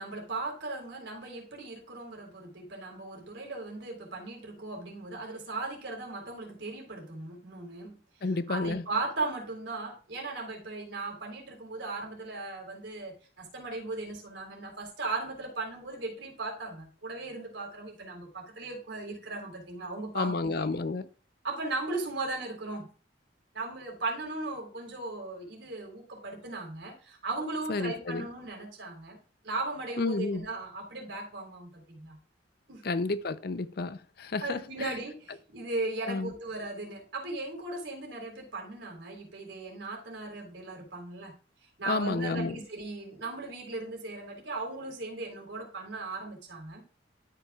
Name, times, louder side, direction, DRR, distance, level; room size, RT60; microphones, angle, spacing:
voice 1, 0.0-7.9 8.5-20.8 21.4-22.9 23.5-29.2 29.4-32.2 32.7-32.8 34.4-41.3 41.8-46.8, right 2 dB, 70° right, 3.7 m, -37 dB
voice 2, 8.2-8.8 20.1-21.1 27.7-28.3 30.0-30.4 32.8-35.0 36.1-36.3 41.9-42.6, left 3 dB, 55° left, 0.5 m, -31 dB
13.0 x 6.0 x 2.4 m
head